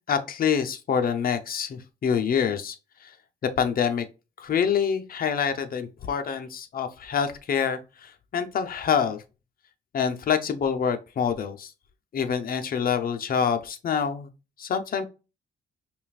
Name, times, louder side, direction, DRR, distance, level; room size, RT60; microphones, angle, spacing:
voice 1, 0.1-3.2 3.4-4.1 4.4-9.2 9.9-11.7 12.1-14.3 14.6-15.0, left 7 dB, 45° left, 0.7 m, -26 dB
5.4 x 2.4 x 2.4 m
cardioid pair, 90°, 20 cm